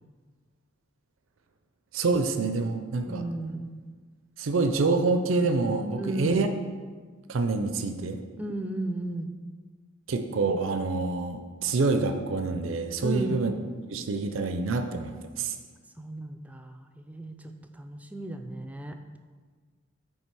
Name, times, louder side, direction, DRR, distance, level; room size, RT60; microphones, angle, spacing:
voice 1, 1.9-3.2 4.4-6.5 7.3-8.2 10.1-13.5 13.9-15.6, right 3 dB, 80° right, 7 dB, 0.5 m, -27 dB
voice 2, 3.1-3.7 6.0-6.4 8.4-9.4 13.0-13.4 16.0-19.0, right 1 dB, 5° right, 6 dB, 0.3 m, -34 dB
8.7 x 3.2 x 4.7 m, 1.5 s
head